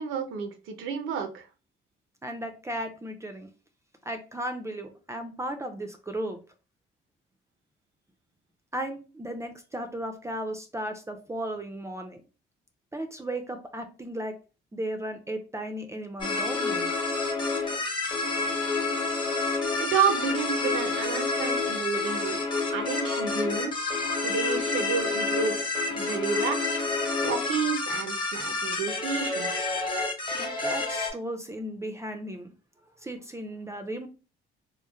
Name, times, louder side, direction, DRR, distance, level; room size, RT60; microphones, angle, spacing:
voice 1, 0.0-1.5 19.8-22.5 22.7-23.9 24.2-26.8 27.2-29.7, right 6 dB, 90° right, 6 dB, 0.6 m, -30 dB
voice 2, 2.2-3.5 4.0-6.4 8.7-12.2 12.9-14.4 14.7-16.9 30.3-32.5 33.0-34.1, right 1 dB, 15° right, 6 dB, 0.4 m, -35 dB
sound 1, 16.2-31.1, left 3 dB, 25° left, 0.8 m, -29 dB
3.1 x 2.0 x 2.2 m, 0.32 s
cardioid pair, 90°, 20 cm